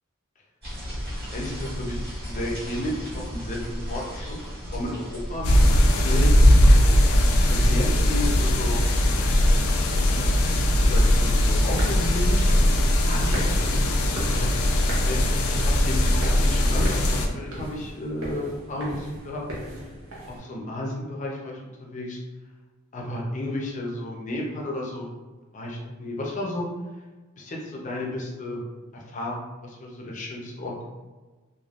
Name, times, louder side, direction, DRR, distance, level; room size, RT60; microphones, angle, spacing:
sound 1, 0.6-6.8, equal, 45° right, 1.5 m, -35 dB
voice 1, 1.3-6.3 7.4-8.8 10.1-12.5 13.0-14.5 15.0-19.4 20.3-22.2 22.9-25.1 25.5-26.7 27.4-28.6 28.9-29.4 29.6-30.9, left 1 dB, 35° left, -2 dB, 0.5 m, -33 dB
sound 2, 5.4-17.3, left 1 dB, 90° left, 0.4 m, -19 dB
sound 3, 11.6-20.4, right 1 dB, 80° right, 0.8 m, -38 dB
3.3 x 2.2 x 2.4 m, 1.3 s
head